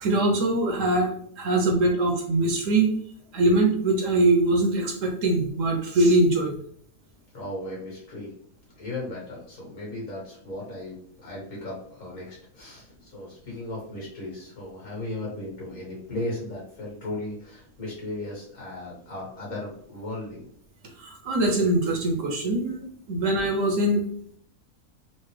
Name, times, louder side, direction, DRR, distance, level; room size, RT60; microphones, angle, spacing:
voice 1, 0.0-1.1 1.4-2.9 3.3-6.5 21.0-24.0, right 2 dB, 65° right, 2 dB, 1.0 m, -22 dB
voice 2, 7.3-8.3 8.8-20.4, left 1 dB, 60° left, -4 dB, 1.9 m, -36 dB
4.1 x 2.1 x 3.1 m, 0.62 s
omnidirectional pair, 1.6 m